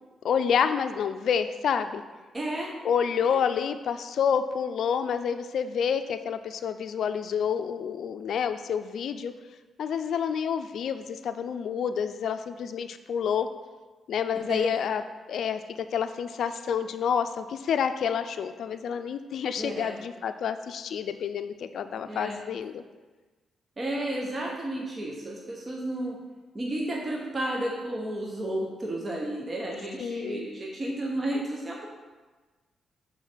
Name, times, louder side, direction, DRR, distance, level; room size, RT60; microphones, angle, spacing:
voice 1, 0.2-2.0 2.8-9.3 9.8-13.5 14.1-15.0 15.3-22.8 30.0-30.5, left 7 dB, 70° left, 9 dB, 0.4 m, -28 dB
voice 2, 2.3-2.7 14.5-14.8 19.6-20.0 22.1-22.4 23.8-26.2 26.5-31.9, right 1 dB, 30° right, -2 dB, 0.9 m, -32 dB
6.2 x 4.1 x 5.0 m, 1.3 s
cardioid pair, 100°, 0 cm